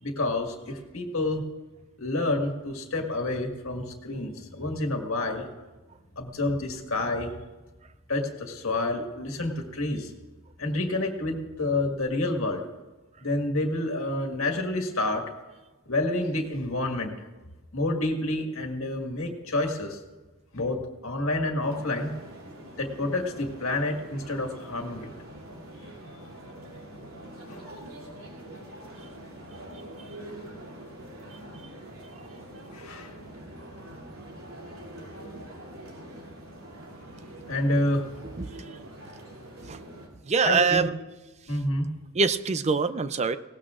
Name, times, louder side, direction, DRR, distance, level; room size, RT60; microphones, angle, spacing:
voice 1, 0.0-1.4 2.0-5.5 6.2-7.3 8.1-10.1 10.6-12.7 13.2-15.3 15.9-17.1 17.7-20.0 20.5-22.1 22.8-25.1 27.5-27.7 32.7-33.1 37.5-38.1 40.4-40.9 41.5-41.9, left 2 dB, 70° left, 2 dB, 1.9 m, -28 dB
sound 1, 21.6-40.1, right 1 dB, 80° right, 3.0 m, -44 dB
voice 2, 38.4-38.8 39.6-39.8 40.3-40.9 42.1-43.4, right 5 dB, 30° right, 12 dB, 0.5 m, -24 dB
19.0 x 17.5 x 2.5 m, 1.2 s
head